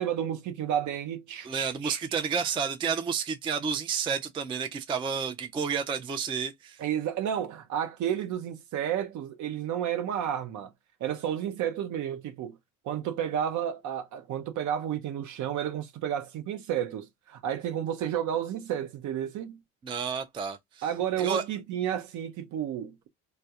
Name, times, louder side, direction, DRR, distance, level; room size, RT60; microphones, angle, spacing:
voice 1, 0.0-2.0 6.8-10.7 11.0-12.6 12.8-19.6 20.8-23.1, right 10 dB, 55° right, 0.7 m, -31 dB
voice 2, 1.4-6.8 19.8-20.9 21.2-21.4, right 6 dB, 15° right, 0.3 m, -30 dB
2.2 x 2.1 x 2.7 m
hypercardioid pair, 75°, 36 cm